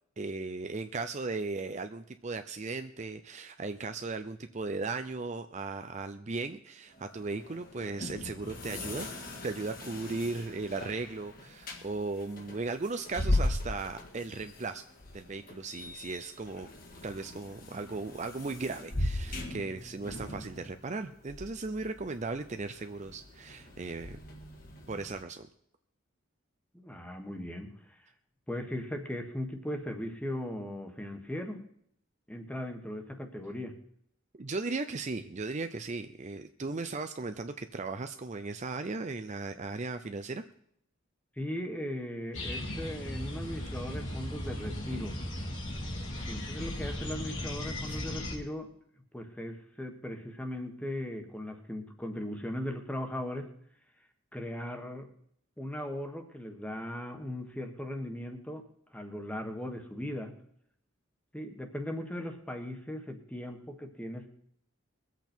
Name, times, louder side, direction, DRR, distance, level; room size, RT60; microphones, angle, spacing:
voice 1, 0.2-9.1 9.4-14.8 15.1-16.7 17.0-24.2 24.9-25.5 34.3-40.4 43.6-43.7 47.9-48.0, right 3 dB, 35° right, 8 dB, 0.5 m, -37 dB
sound 1, 6.9-25.2, left 1 dB, 45° left, 1.9 m, -39 dB
voice 2, 26.7-28.0 28.5-31.6 32.3-33.8 41.4-45.2 46.3-48.7 49.1-53.5 54.3-55.1 55.6-60.3 61.3-64.3, left 1 dB, 5° left, 4 dB, 1.4 m, -38 dB
sound 2, 42.3-48.3, left 1 dB, 70° left, 3.2 m, -37 dB
22.0 x 8.2 x 4.5 m, 0.70 s
head